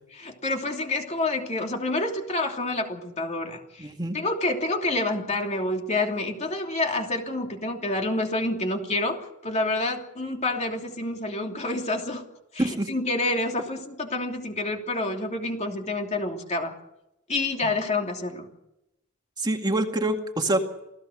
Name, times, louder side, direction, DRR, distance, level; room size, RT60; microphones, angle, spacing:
voice 1, 0.2-12.2 12.5-16.8 17.3-18.5, left 2 dB, 35° left, 2 dB, 2.9 m, -28 dB
voice 2, 3.8-4.2 12.6-12.9 17.6-17.7 19.4-20.6, right 1 dB, 20° right, 3 dB, 2.1 m, -26 dB
28.0 x 17.5 x 6.5 m, 0.87 s
head